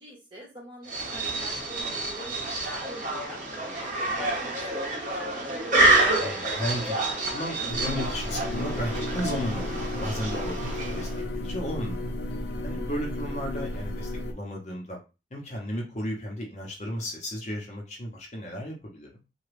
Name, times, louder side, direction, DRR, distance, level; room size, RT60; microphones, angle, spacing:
voice 1, 0.0-2.5 2.9-3.4 3.8-6.0, right 1 dB, 25° right, -3 dB, 1.4 m, -44 dB
sound 1, 0.9-11.3, right 2 dB, 45° right, 0.9 m, -28 dB
voice 2, 6.2-6.9 7.3-12.2 12.6-15.0 15.3-19.2, equal, 40° left, -1 dB, 0.8 m, -34 dB
sound 2, 7.7-14.3, left 1 dB, 80° left, 0.6 m, -33 dB
3.5 x 2.2 x 3.3 m, 0.29 s
head